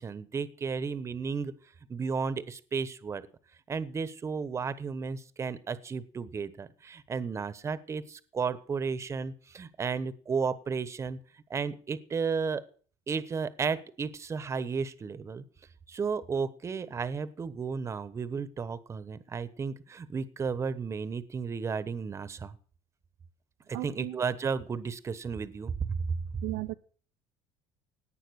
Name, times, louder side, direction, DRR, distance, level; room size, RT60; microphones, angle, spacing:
voice 1, 0.0-1.5 1.9-3.3 3.7-11.2 11.5-12.6 13.1-15.4 15.9-22.6 23.7-26.2, right 5 dB, 25° right, 1.1 m, -33 dB
voice 2, 23.7-24.2 26.4-26.7, right 19 dB, 80° right, 0.8 m, -35 dB
17.5 x 9.1 x 6.4 m
cardioid pair, 130°, 12 cm